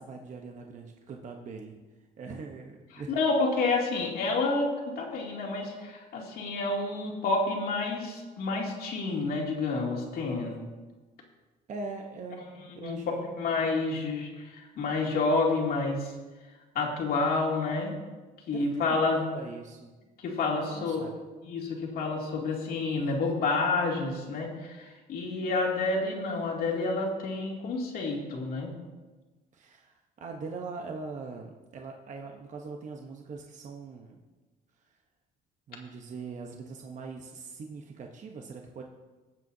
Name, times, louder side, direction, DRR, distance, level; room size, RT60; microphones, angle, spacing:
voice 1, 0.0-1.8 2.2-3.2 11.7-13.2 18.5-19.0 19.3-19.9 20.5-21.1 29.5-34.2 35.7-38.8, right 4 dB, 45° right, 2 dB, 1.0 m, -42 dB
voice 2, 2.9-10.6 12.7-16.1 16.7-17.9 18.5-19.3 20.2-21.0 21.4-28.7, left 3 dB, 65° left, -1 dB, 2.6 m, -29 dB
18.0 x 7.7 x 2.8 m, 1.2 s
cardioid pair, 110°, 17 cm